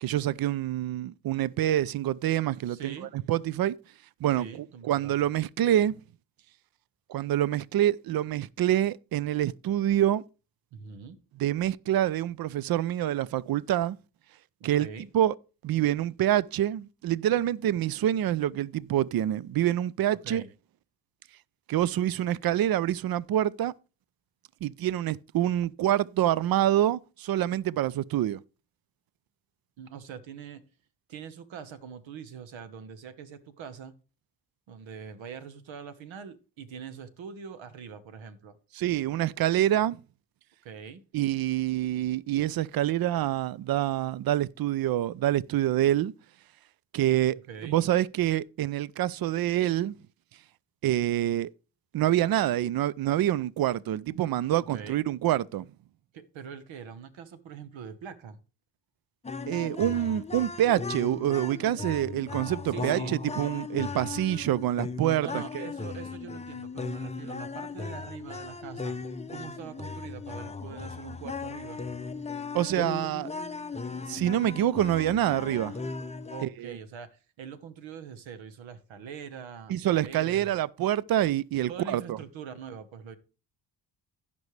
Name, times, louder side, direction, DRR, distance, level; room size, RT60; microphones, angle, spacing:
voice 1, 0.0-3.7 4.2-6.0 7.1-10.2 11.4-14.0 14.6-14.9 15.1-15.3 15.6-20.4 21.7-23.7 24.6-28.4 38.7-40.0 41.1-46.1 46.9-47.4 47.6-49.9 50.8-51.5 51.9-55.7 59.5-65.6 72.5-73.3 74.1-75.8 76.4-76.8 79.7-82.2, right 12 dB, 50° right, 0.5 m, -26 dB
voice 2, 2.6-3.1 4.4-5.3 10.7-11.2 14.6-15.1 20.2-20.5 29.8-30.6 31.1-33.9 34.7-38.6 40.6-41.0 47.5-47.8 54.7-55.0 56.1-58.4 62.7-63.1 65.2-69.0 69.3-71.8 76.3-80.5 81.7-83.2, right 7 dB, 80° right, 1.2 m, -43 dB
sound 1, 59.2-76.4, left 4 dB, 15° left, 0.6 m, -37 dB
15.5 x 5.4 x 3.3 m
cardioid pair, 65°, 45 cm